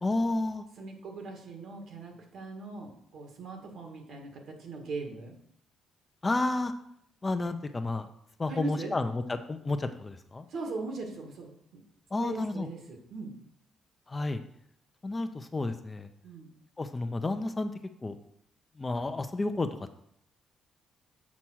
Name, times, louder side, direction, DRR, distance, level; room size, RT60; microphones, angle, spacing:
voice 1, 0.0-0.6 6.2-6.7 7.2-8.1 8.4-10.5 12.1-12.7 14.1-14.4 15.0-16.1 16.8-17.7 18.0-18.2 18.8-19.7, left 2 dB, 25° left, 8 dB, 0.7 m, -31 dB
voice 2, 0.8-5.3 8.5-8.9 10.5-11.8 12.2-13.4 16.2-16.5, right 3 dB, 70° right, 2 dB, 2.0 m, -40 dB
7.3 x 4.4 x 6.3 m, 0.70 s
cardioid pair, 90°, 0 cm